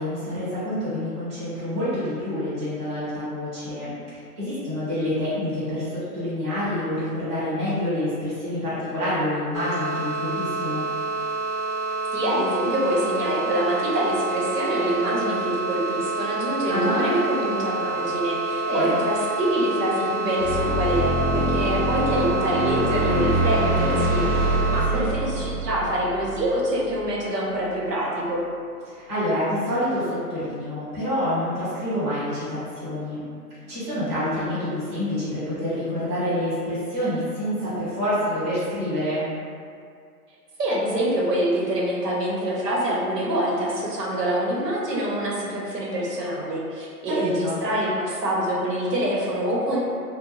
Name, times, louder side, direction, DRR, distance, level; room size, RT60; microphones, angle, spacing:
voice 1, 0.0-3.9 4.4-10.8 16.7-17.0 18.6-19.0 24.9-25.1 28.9-33.2 33.7-39.2 47.0-47.6, left 1 dB, 20° right, -13 dB, 0.6 m, -27 dB
sound 1, 9.5-24.9, right 3 dB, 60° left, 0.5 m, -28 dB
voice 2, 12.1-28.4 40.6-49.8, right 1 dB, 90° right, -5 dB, 0.9 m, -25 dB
sound 2, 20.4-27.1, right 1 dB, 50° right, 0.8 m, -25 dB
2.5 x 2.1 x 3.0 m, 2.3 s
hypercardioid pair, 155°, 47 cm